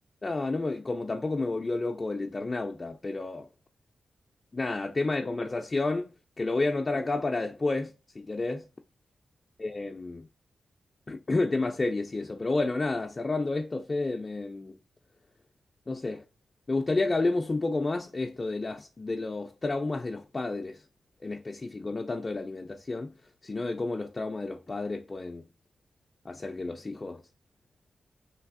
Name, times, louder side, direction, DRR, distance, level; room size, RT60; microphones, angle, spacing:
voice 1, 0.2-3.5 4.5-8.7 9.6-10.3 11.1-14.8 15.9-16.2 16.7-20.8 21.2-23.1 23.4-25.4 26.3-27.2, left 3 dB, 35° left, 0.3 m, -30 dB
3.4 x 2.4 x 2.4 m
cardioid pair, 80°, 0 cm